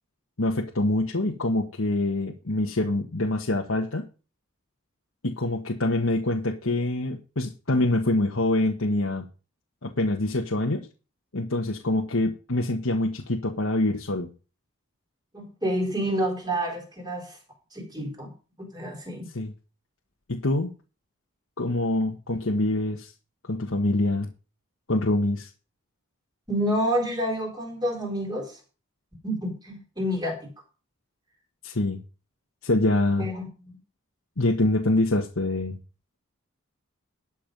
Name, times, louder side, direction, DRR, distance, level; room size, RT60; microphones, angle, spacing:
voice 1, 0.4-4.0 5.2-9.3 9.8-10.9 11.3-14.3 19.3-19.5 20.3-20.7 21.6-23.1 23.5-24.3 24.9-25.5 31.6-32.0 32.6-33.3 34.4-35.8, left 2 dB, 75° left, 0 dB, 1.3 m, -25 dB
voice 2, 15.3-17.4 17.7-18.3 18.6-19.3 26.5-28.6 29.2-30.5 33.2-33.5, equal, 20° right, 1 dB, 4.2 m, -28 dB
12.0 x 7.3 x 5.3 m, 0.34 s
head